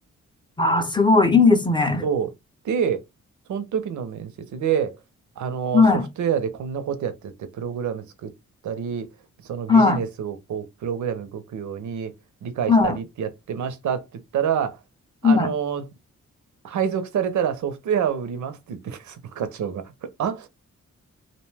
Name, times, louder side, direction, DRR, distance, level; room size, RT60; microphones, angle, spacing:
voice 1, 0.6-2.0 5.7-6.1 9.7-10.0 12.7-13.0 15.2-15.5, left 4 dB, 15° left, 0.5 m, -17 dB
voice 2, 2.6-3.0 3.5-5.0 5.4-8.3 8.6-9.1 9.4-12.1 12.4-14.1 14.3-14.8 15.2-15.8 16.6-20.5, right 8 dB, 85° right, 0.6 m, -27 dB
2.6 x 2.1 x 3.2 m
wide cardioid pair, 125°, 29 cm